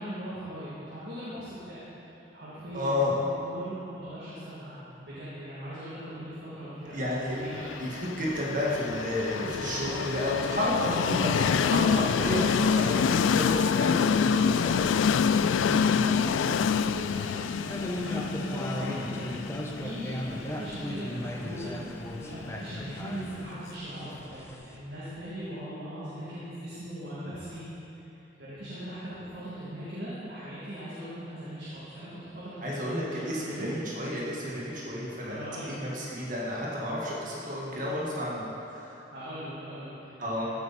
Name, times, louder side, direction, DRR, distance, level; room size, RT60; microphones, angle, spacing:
voice 1, 0.0-1.8 2.1-7.7 15.4-24.4 24.7-27.7 28.4-33.7 35.2-35.8 39.1-40.4, equal, 65° right, -11 dB, 2.7 m, -40 dB
voice 2, 2.7-3.1 6.9-7.4 7.8-14.9 22.8-23.0 32.6-39.0 40.2-40.4, left 1 dB, 45° right, -5 dB, 1.9 m, -31 dB
Train, 7.5-23.4, left 6 dB, 85° left, 0.3 m, -27 dB
sound 1, 9.4-24.8, equal, 15° left, 0.7 m, -40 dB
15.0 x 8.3 x 4.3 m, 3.0 s
head